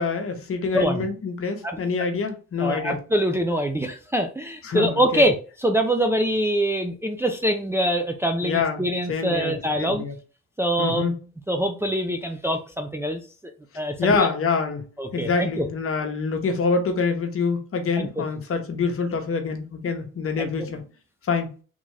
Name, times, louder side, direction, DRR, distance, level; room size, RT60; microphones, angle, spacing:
voice 1, 0.0-3.0 4.6-5.2 8.4-10.1 10.8-11.1 14.0-14.9 15.1-20.8 21.3-21.5, left 5 dB, 50° left, 1.0 m, -26 dB
voice 2, 0.7-1.1 1.6-1.8 2.6-10.0 10.6-11.1 11.5-13.2 13.8-14.3 15.0-15.7 18.0-18.2 20.4-20.5, right 1 dB, 10° right, 0.5 m, -24 dB
3.6 x 2.5 x 3.2 m
cardioid pair, 90°, 30 cm